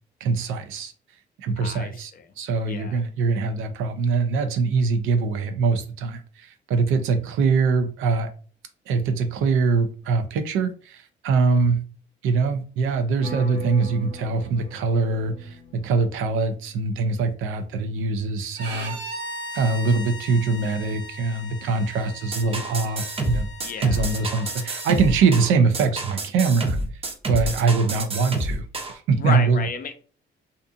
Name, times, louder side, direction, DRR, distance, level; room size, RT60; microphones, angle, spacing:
voice 1, 0.2-0.9 1.4-2.1 2.4-8.3 8.9-11.8 12.2-19.0 19.5-23.5 23.8-26.8 27.3-28.7 28.9-29.6, right 4 dB, 90° right, 0.5 m, -23 dB
voice 2, 1.6-2.2 2.6-3.0 23.6-24.0 29.2-29.9, left 6 dB, 45° left, 0.5 m, -32 dB
sound 1, 13.2-17.0, left 4 dB, 20° left, 0.8 m, -41 dB
Bowed string instrument, 18.6-25.3, left 1 dB, 65° right, 0.8 m, -38 dB
sound 2, 22.3-29.0, right 1 dB, 30° right, 0.6 m, -28 dB
2.5 x 2.5 x 2.4 m
cardioid pair, 90°, 20 cm